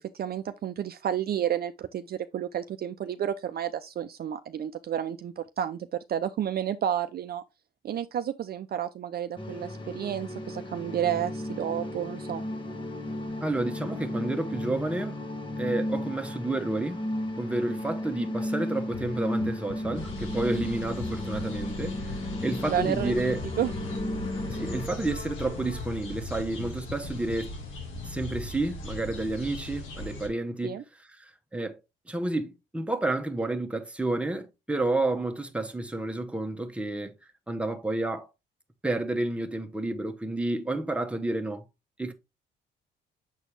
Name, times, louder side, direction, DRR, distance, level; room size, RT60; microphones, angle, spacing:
voice 1, 0.0-7.4 7.8-12.4 22.7-23.7 30.6-30.8, right 10 dB, 50° right, 0.5 m, -31 dB
sound 1, 9.4-24.9, left 1 dB, 25° left, 1.1 m, -34 dB
voice 2, 13.4-15.2 15.6-17.1 17.4-23.4 24.5-27.5 28.0-30.8 31.1-31.8 32.1-37.1 37.5-38.3 38.8-41.6 42.0-42.1, right 2 dB, 5° right, 1.0 m, -30 dB
Bass guitar, 18.9-28.5, left 10 dB, 55° left, 0.4 m, -43 dB
sound 2, 19.9-30.3, equal, 90° left, 1.8 m, -39 dB
7.1 x 4.2 x 3.2 m
cardioid pair, 90°, 20 cm